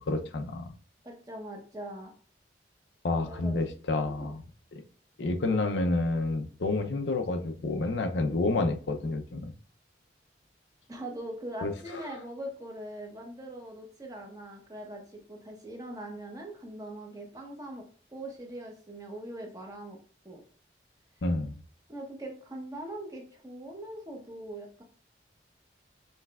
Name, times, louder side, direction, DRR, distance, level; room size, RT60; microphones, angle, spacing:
voice 1, 0.1-0.7 3.0-4.4 4.7-4.8 5.2-9.5 11.6-11.7 21.2-21.6, left 2 dB, 80° left, 0.5 m, -29 dB
voice 2, 1.0-2.1 3.3-3.5 4.1-4.4 10.9-17.8 18.1-20.0 20.2-20.4 21.9-24.8, right 1 dB, 20° right, 0.8 m, -41 dB
5.6 x 3.2 x 2.3 m
head